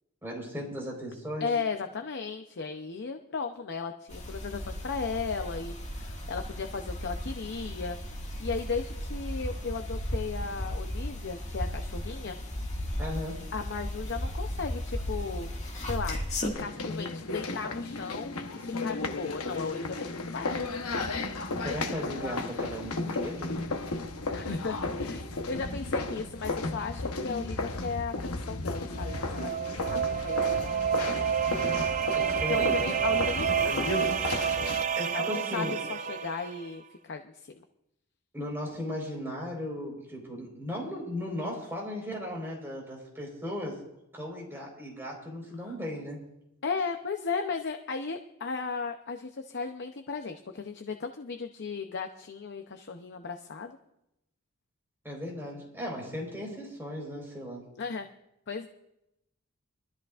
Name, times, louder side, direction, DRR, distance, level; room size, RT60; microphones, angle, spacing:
voice 1, 0.2-1.5 13.0-13.4 21.6-23.5 32.1-33.0 34.9-35.7 38.3-43.8 44.1-46.2 55.0-57.7, left 1 dB, 10° right, -2 dB, 4.3 m, -36 dB
voice 2, 1.4-8.0 8.4-12.4 13.5-15.5 15.8-16.2 16.6-20.6 24.3-30.7 32.5-34.2 35.1-37.6 45.6-45.8 46.6-53.8 57.8-58.1 58.5-58.7, left 5 dB, 55° left, 5 dB, 0.7 m, -36 dB
sound 1, 4.1-16.5, left 1 dB, 35° left, 1.9 m, -35 dB
sound 2, 16.5-34.8, left 2 dB, 85° left, 1.0 m, -34 dB
sound 3, 28.9-36.7, right 7 dB, 35° right, 0.6 m, -29 dB
23.5 x 13.0 x 2.5 m, 0.85 s
head